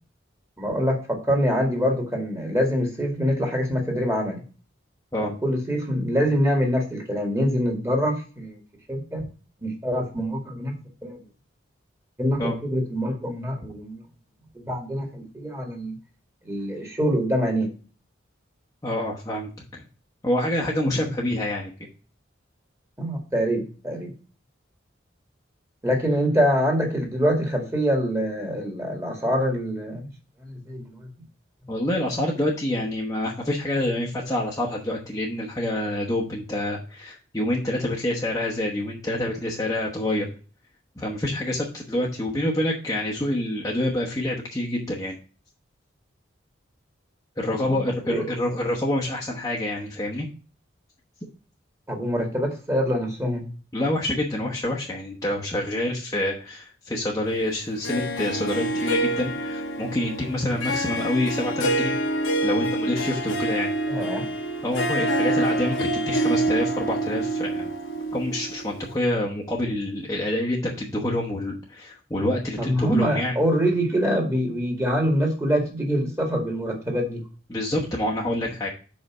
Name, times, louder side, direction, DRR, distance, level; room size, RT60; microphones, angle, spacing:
voice 1, 0.6-4.4 5.2-8.6 8.9-9.3 9.6-10.7 11.0-11.2 12.2-14.0 14.5-16.0 16.5-17.7 23.0-24.1 25.8-30.1 30.4-31.1 32.1-32.2 47.5-47.8 48.1-48.3 51.9-53.4 63.9-64.2 72.6-77.2, equal, 15° right, 1 dB, 1.9 m, -25 dB
voice 2, 18.8-19.8 20.2-21.7 31.7-40.3 41.0-45.1 47.4-50.3 53.7-61.9 62.4-64.1 64.6-67.7 68.1-73.4 77.5-78.7, left 1 dB, 15° left, -3 dB, 1.0 m, -27 dB
Harp, 57.8-69.0, right 1 dB, 85° left, 1.1 m, -26 dB
5.3 x 4.9 x 6.0 m, 0.37 s
head